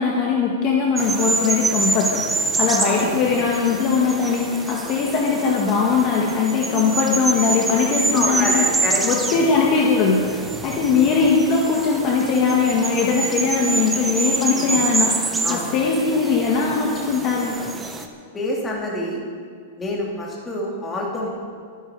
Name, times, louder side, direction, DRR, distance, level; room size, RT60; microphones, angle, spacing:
voice 1, 0.0-2.2 2.5-8.6 9.0-10.2 10.6-15.1 15.5-17.6, left 5 dB, 30° left, -2 dB, 1.6 m, -20 dB
sound 1, 1.0-18.0, right 3 dB, 10° right, 0.9 m, -26 dB
voice 2, 8.1-9.0 9.5-9.7 10.6-10.8 14.6-14.8 15.4-15.7 18.3-19.2 19.8-21.3, left 1 dB, 10° left, -3 dB, 2.4 m, -27 dB
24.0 x 10.5 x 4.8 m, 2.1 s
supercardioid pair, 170°, 0 cm